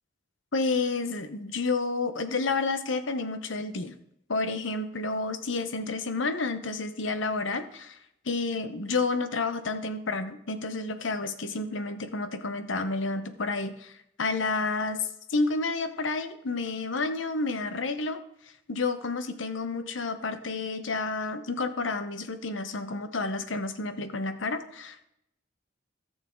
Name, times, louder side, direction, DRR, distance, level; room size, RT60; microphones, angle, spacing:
voice 1, 0.5-3.9 4.3-8.0 8.2-18.2 18.7-25.0, left 3 dB, 80° left, 10 dB, 0.9 m, -30 dB
15.0 x 6.6 x 3.8 m, 0.79 s
head